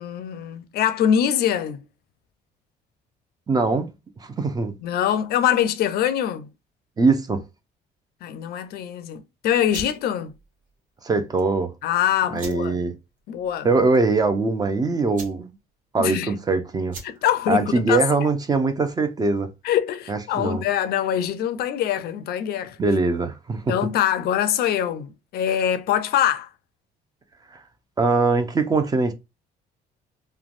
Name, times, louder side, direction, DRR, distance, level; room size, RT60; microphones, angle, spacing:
voice 1, 0.0-1.8 4.8-6.5 8.2-10.3 11.8-12.8 13.3-13.7 16.0-16.3 17.0-18.3 19.6-22.8 23.7-26.5, left 10 dB, 70° left, 0.5 m, -24 dB
voice 2, 3.5-3.9 4.2-4.8 7.0-7.4 11.0-11.7 12.3-12.9 13.6-15.5 15.9-17.0 17.5-19.5 20.1-20.6 22.8-23.7 28.0-29.1, right 3 dB, 25° right, 0.6 m, -22 dB
sound 1, 9.6-19.1, right 3 dB, 50° right, 1.1 m, -45 dB
3.2 x 2.2 x 2.4 m
cardioid pair, 110°, 17 cm